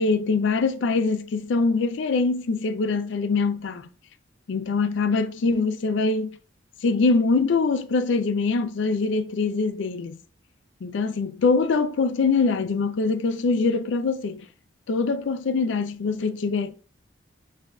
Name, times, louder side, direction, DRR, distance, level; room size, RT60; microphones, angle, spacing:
voice 1, 0.0-3.9 4.5-6.3 6.8-10.2 10.8-14.4 14.9-16.8, left 4 dB, 65° left, 0.4 m, -23 dB
7.0 x 2.6 x 2.2 m
head